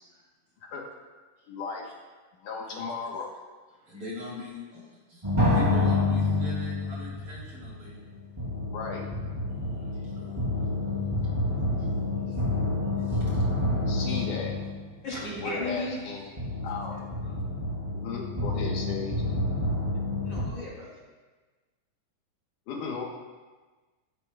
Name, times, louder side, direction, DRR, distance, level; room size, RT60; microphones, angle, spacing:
voice 1, 1.5-1.8 2.4-3.3 8.7-9.0 13.9-14.5 15.4-16.3 16.6-16.9 17.9-19.2 22.7-23.1, left 5 dB, 75° left, -1 dB, 2.6 m, -35 dB
voice 2, 3.7-8.0 9.5-10.9 11.8-11.9 12.3-12.4 13.0-13.4 14.1-14.2 15.1-15.5, equal, 40° right, -6 dB, 4.1 m, -42 dB
sound 1, 5.2-20.4, left 2 dB, 10° right, 2.2 m, -28 dB
voice 3, 15.0-16.0 17.2-17.4 20.2-21.0, left 1 dB, 30° left, -5 dB, 3.4 m, -35 dB
16.0 x 14.0 x 2.3 m, 1.3 s
omnidirectional pair, 4.0 m